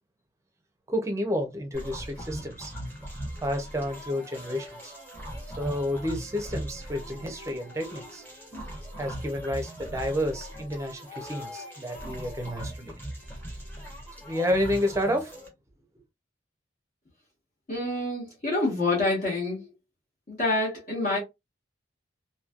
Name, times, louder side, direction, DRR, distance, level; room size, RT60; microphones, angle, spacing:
voice 1, 0.9-2.7 3.4-4.9 5.6-8.2 9.0-12.9 14.2-15.3, equal, 15° right, 0.6 m, -30 dB
sound 1, 1.7-15.5, equal, 10° left, 0.9 m, -40 dB
voice 2, 17.7-19.6 20.3-21.2, left 2 dB, 40° left, 1.3 m, -27 dB
3.0 x 2.7 x 2.4 m
head